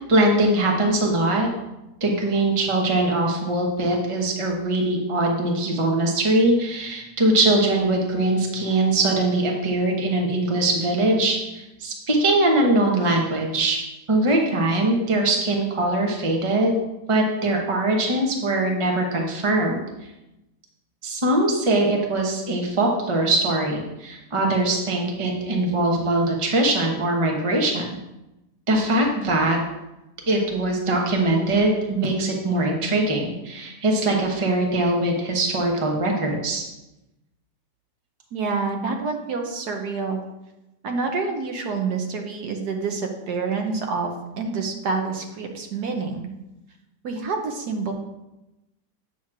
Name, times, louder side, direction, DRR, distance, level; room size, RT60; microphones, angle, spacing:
voice 1, 0.1-1.5 2.0-13.8 14.1-16.7 17.1-19.8 21.0-27.9 28.7-29.6 30.3-36.6, right 2 dB, 25° right, 0 dB, 0.9 m, -22 dB
voice 2, 38.3-40.2 40.8-46.3 47.0-47.9, right 4 dB, 75° right, 3 dB, 1.4 m, -27 dB
8.3 x 3.1 x 6.0 m, 0.95 s
omnidirectional pair, 1.8 m